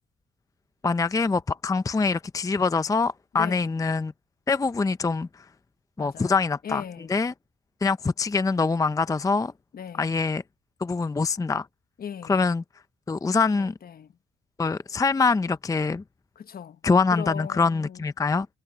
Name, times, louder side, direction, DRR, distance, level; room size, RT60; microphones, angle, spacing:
voice 1, 0.8-4.1 4.5-5.4 6.0-6.8 7.1-7.3 7.8-9.5 10.0-10.4 10.8-11.7 12.3-12.6 13.1-13.7 14.6-16.0 16.8-18.5, left 4 dB, 15° left, 0.5 m, -24 dB
voice 2, 3.3-3.7 6.0-7.2 9.7-10.2 12.0-12.4 13.5-14.1 16.4-16.8 17.1-18.0, left 8 dB, 50° left, 1.2 m, -38 dB
cardioid pair, 90°, 20 cm